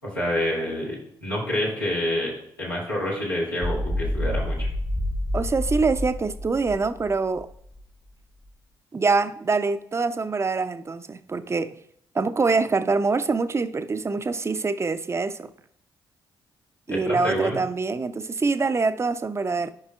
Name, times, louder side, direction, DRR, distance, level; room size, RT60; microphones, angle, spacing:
voice 1, 0.0-2.3 2.6-4.7 16.9-17.6, left 1 dB, 90° left, 1.8 m, -27 dB
sound 1, 3.6-7.8, left 1 dB, 20° left, 0.9 m, -28 dB
voice 2, 5.3-7.5 8.9-11.8 12.1-15.5 16.9-19.7, right 4 dB, 25° right, 0.6 m, -25 dB
13.5 x 5.5 x 2.4 m
figure-of-eight pair, 40°, 11 cm